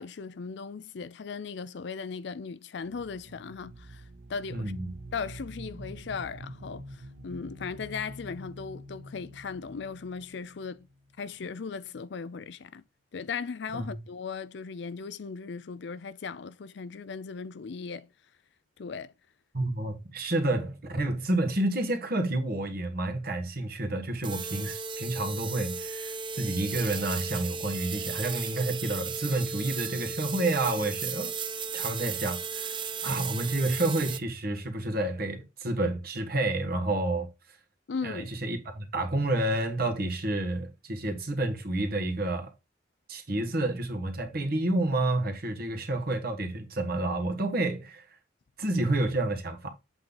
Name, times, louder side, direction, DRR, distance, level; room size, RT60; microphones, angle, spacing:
voice 1, 0.0-4.0 4.3-4.7 5.1-10.9 11.2-12.8 13.1-18.1 18.8-19.1 37.9-38.3, left 5 dB, 65° left, 0.5 m, -37 dB
sound 1, 2.8-11.4, right 1 dB, 80° right, 1.0 m, -46 dB
voice 2, 4.5-4.9 13.7-13.9 19.5-31.3 31.7-37.3 38.0-42.5 43.1-48.0 48.6-49.7, right 2 dB, 55° right, 1.5 m, -29 dB
sound 2, 24.2-34.2, right 5 dB, 25° right, 0.5 m, -35 dB
7.8 x 3.7 x 3.8 m
head